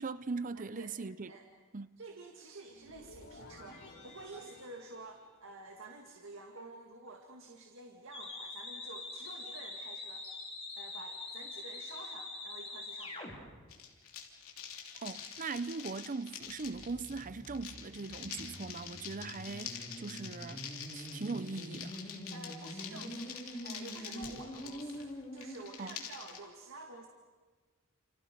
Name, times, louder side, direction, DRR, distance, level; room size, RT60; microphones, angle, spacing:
voice 1, 0.0-1.3 1.7-2.0 15.0-22.0 25.8-26.0, right 4 dB, 40° right, 0.7 m, -40 dB
voice 2, 0.5-0.9 1.3-1.5 2.0-10.3 10.8-13.4 22.3-27.1, right 2 dB, 60° right, 2.2 m, -50 dB
sound 1, 2.7-5.9, left 2 dB, 65° left, 7.1 m, -54 dB
sound 2, 8.1-13.3 16.4-25.5, left 1 dB, 25° left, 5.1 m, -45 dB
sound 3, 13.7-26.4, left 7 dB, 80° left, 3.1 m, -46 dB
29.5 x 29.0 x 5.3 m
head